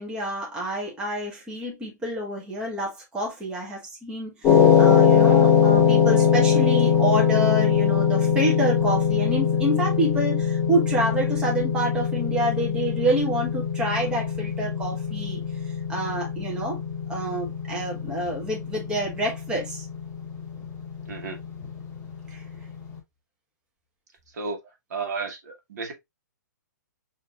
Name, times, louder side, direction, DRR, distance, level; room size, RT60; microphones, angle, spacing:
voice 1, 0.0-15.4 15.9-16.8 17.1-19.9 22.3-22.4, right 1 dB, 10° right, 1.1 m, -28 dB
sound 1, 4.4-22.7, left 7 dB, 15° left, 1.7 m, -22 dB
voice 2, 21.1-21.4 24.3-24.6 24.9-25.9, right 4 dB, 60° right, 1.3 m, -33 dB
5.8 x 2.8 x 2.4 m
hypercardioid pair, 150°, 10 cm